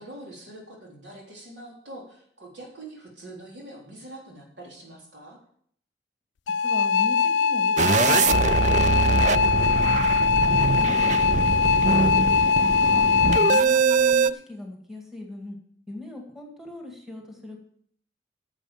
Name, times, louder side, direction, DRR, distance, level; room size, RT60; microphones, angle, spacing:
voice 1, 0.0-5.4, right 1 dB, 80° right, -2 dB, 3.9 m, -44 dB
sound 1, 6.5-13.6, left 6 dB, 85° left, 0.4 m, -21 dB
voice 2, 6.6-8.9 9.3-10.0 10.4-12.1 12.8-13.1 13.3-15.6 15.9-17.6, left 2 dB, ahead, 1 dB, 2.0 m, -38 dB
sound 2, 7.8-14.3, right 5 dB, 40° right, 0.4 m, -23 dB
10.5 x 7.3 x 7.3 m, 0.64 s
head